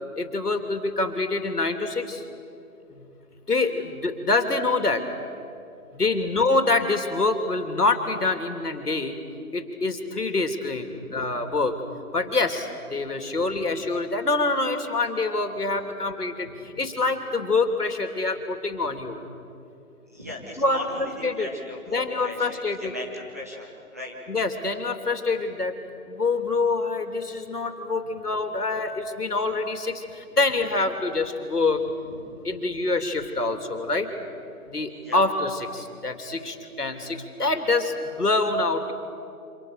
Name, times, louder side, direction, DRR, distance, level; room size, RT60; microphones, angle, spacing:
voice 1, 0.2-2.2 3.5-5.0 5.9-9.1 9.5-10.9 11.1-11.7 12.1-16.5 16.8-19.2 20.6-21.5 21.9-22.9 24.3-25.7 26.1-30.0 30.4-31.8 32.4-34.1 34.7-38.9, left 3 dB, 85° left, 6 dB, 3.3 m, -25 dB
voice 2, 10.9-11.3 13.3-13.6 16.6-16.8 20.1-24.2 28.0-28.1 32.0-32.4 34.9-35.2, left 1 dB, 10° right, -3 dB, 1.1 m, -39 dB
28.5 x 26.5 x 6.8 m, 2.7 s
figure-of-eight pair, 170°, 45 cm